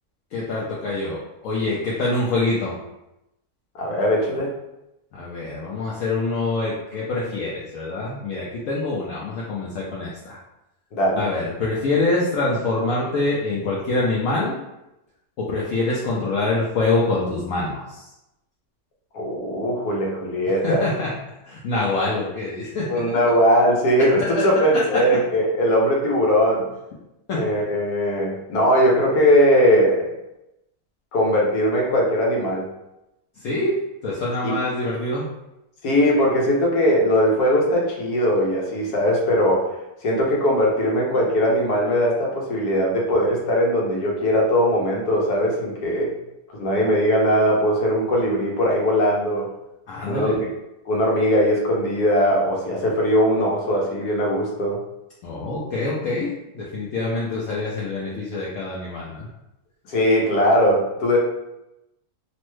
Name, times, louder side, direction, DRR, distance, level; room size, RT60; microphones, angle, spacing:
voice 1, 0.3-2.8 5.1-10.4 11.2-14.6 15.4-18.0 20.6-21.1 21.4-23.0 24.4-24.5 24.7-24.8 27.3-27.5 33.4-35.3 49.9-50.4 55.2-59.3, left 2 dB, 70° left, -5 dB, 0.9 m, -25 dB
voice 2, 3.7-4.5 10.9-11.3 19.1-20.8 22.9-26.7 27.3-30.1 31.1-32.7 34.4-34.6 35.8-39.7 40.0-46.1 46.5-49.5 50.1-50.5 50.9-54.8 59.9-61.2, equal, 85° left, -2 dB, 1.3 m, -20 dB
3.0 x 2.1 x 3.0 m, 0.91 s
omnidirectional pair, 1.6 m